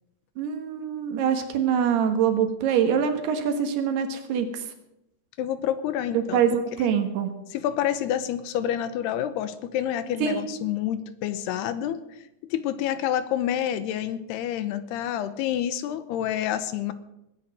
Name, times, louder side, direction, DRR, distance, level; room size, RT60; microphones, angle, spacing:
voice 1, 0.4-4.5 6.3-7.3 10.2-10.5, right 8 dB, 75° right, 7 dB, 3.4 m, -24 dB
voice 2, 5.4-6.6 7.5-12.0 12.5-16.9, left 10 dB, 85° left, 12 dB, 2.9 m, -28 dB
20.5 x 9.1 x 6.4 m, 0.87 s
omnidirectional pair, 4.8 m